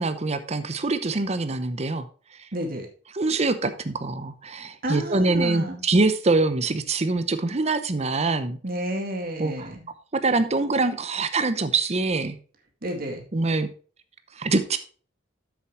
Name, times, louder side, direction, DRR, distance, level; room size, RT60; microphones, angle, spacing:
voice 1, 0.0-2.1 3.1-8.6 9.4-9.7 10.1-12.4 13.3-13.7 14.4-14.8, right 3 dB, 35° right, 11 dB, 0.8 m, -24 dB
voice 2, 2.5-2.9 4.8-5.8 8.6-9.9 12.8-13.2, right 1 dB, 50° right, 3 dB, 2.1 m, -30 dB
7.5 x 6.9 x 4.4 m, 0.40 s
head